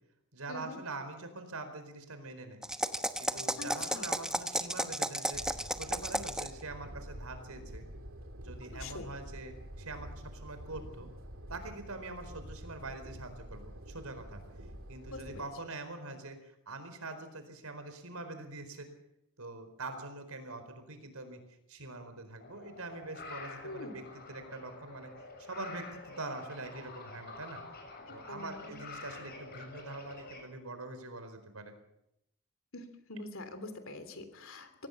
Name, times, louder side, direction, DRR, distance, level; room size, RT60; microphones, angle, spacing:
voice 1, 0.3-2.6 3.2-5.4 5.8-7.8 8.4-11.1 11.5-14.4 14.9-18.9 19.4-21.4 21.7-24.0 24.3-25.1 25.4-27.6 28.1-31.7, right 2 dB, 85° right, 9 dB, 4.5 m, -44 dB
sound 1, 2.6-6.6, right 1 dB, 5° right, 1.0 m, -33 dB
voice 2, 3.6-4.1 8.6-9.1 15.1-15.5 23.6-23.9 28.1-28.8 32.7-34.9, left 2 dB, 65° left, 9 dB, 3.3 m, -45 dB
sound 2, 5.3-15.4, equal, 65° right, 3.1 m, -47 dB
sound 3, 22.4-30.4, left 3 dB, 45° left, 6.9 m, -48 dB
25.0 x 18.0 x 7.1 m, 0.82 s
head